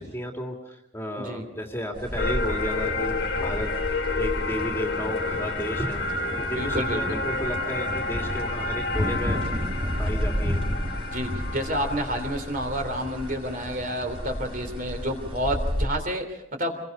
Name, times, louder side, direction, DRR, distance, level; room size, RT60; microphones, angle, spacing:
voice 1, 0.0-6.0 6.4-9.5 10.0-10.6, equal, 10° left, 2 dB, 2.6 m, -33 dB
sound 1, 1.9-15.9, equal, 25° right, 4.8 m, -32 dB
sound 2, 2.2-14.8, left 3 dB, 55° left, 2.1 m, -31 dB
voice 2, 6.5-7.2 11.1-16.8, equal, 45° right, 6 dB, 3.4 m, -29 dB
27.0 x 22.0 x 5.4 m, 0.80 s
head